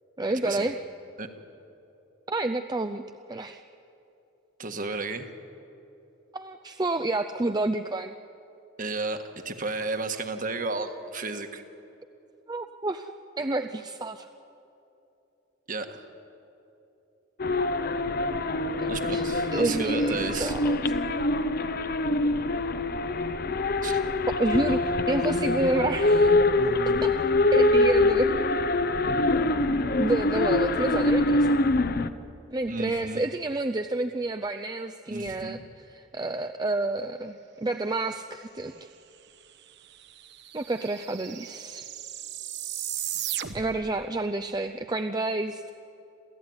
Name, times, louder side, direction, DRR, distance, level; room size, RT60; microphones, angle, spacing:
voice 1, 0.2-0.8 2.3-3.0 3.3-3.6 6.3-8.1 12.5-13.1 13.4-14.3 18.8-19.2 19.5-21.0 24.4-26.3 26.9-27.1 27.5-28.3 30.0-31.6 32.5-38.9 40.5-41.9 43.5-45.7, right 2 dB, 20° right, 7 dB, 0.5 m, -29 dB
voice 2, 4.6-5.3 8.8-11.6 15.7-16.1 18.9-20.5 23.8-24.0 32.7-33.2 35.1-35.6, right 3 dB, 40° right, 7 dB, 1.6 m, -33 dB
sound 1, 17.4-32.1, left 2 dB, 50° left, 0.8 m, -24 dB
sound 2, 39.4-39.5 39.7-43.9, right 11 dB, 60° right, 1.1 m, -36 dB
27.5 x 16.0 x 9.6 m, 2.9 s
head